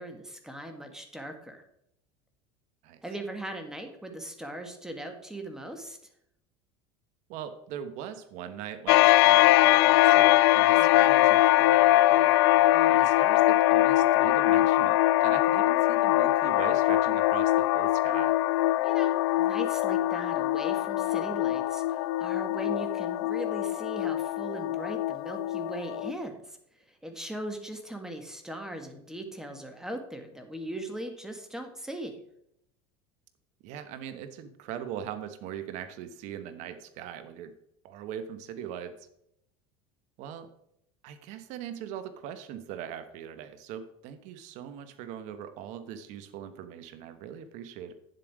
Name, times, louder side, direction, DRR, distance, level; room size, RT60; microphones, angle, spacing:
voice 1, 0.0-1.6 3.0-6.0 10.8-10.9 12.5-13.2 18.8-26.6 26.9-32.2, right 1 dB, 5° right, 5 dB, 2.0 m, -39 dB
voice 2, 7.3-12.4 12.9-18.4 33.6-37.5 37.8-39.1 40.2-40.5 41.0-47.9, right 9 dB, 60° right, 10 dB, 1.3 m, -40 dB
sound 1, 8.9-26.1, left 16 dB, 75° left, 0.4 m, -22 dB
9.9 x 7.9 x 4.9 m, 0.76 s
supercardioid pair, 110°, 14 cm